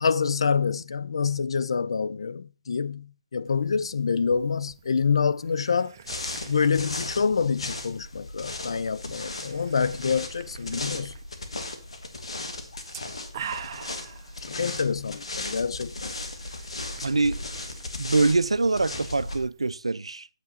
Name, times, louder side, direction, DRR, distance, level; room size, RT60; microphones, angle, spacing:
voice 1, 0.0-5.9 6.5-11.1 14.5-16.1, left 5 dB, 65° left, 0.5 m, -26 dB
sound 1, 3.5-19.8, right 7 dB, 35° right, 0.7 m, -47 dB
sound 2, 6.0-19.4, left 2 dB, 80° left, 1.8 m, -36 dB
voice 2, 17.0-17.4 18.0-20.3, right 3 dB, 90° right, 0.4 m, -24 dB
8.8 x 7.5 x 4.1 m
figure-of-eight pair, 145°, 3 cm